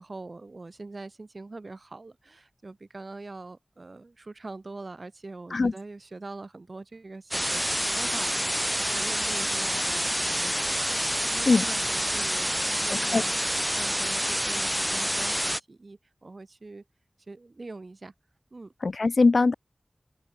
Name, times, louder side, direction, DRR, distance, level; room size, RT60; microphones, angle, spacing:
voice 1, 0.0-13.3 13.8-16.8 17.3-18.1 18.5-18.7, right 3 dB, 60° right, 1.6 m, -43 dB
sound 1, 7.3-15.6, equal, 5° right, 0.3 m, -27 dB
voice 2, 12.9-13.2 18.8-19.5, left 3 dB, 75° left, 0.6 m, -21 dB
open air
wide cardioid pair, 60°, 0 cm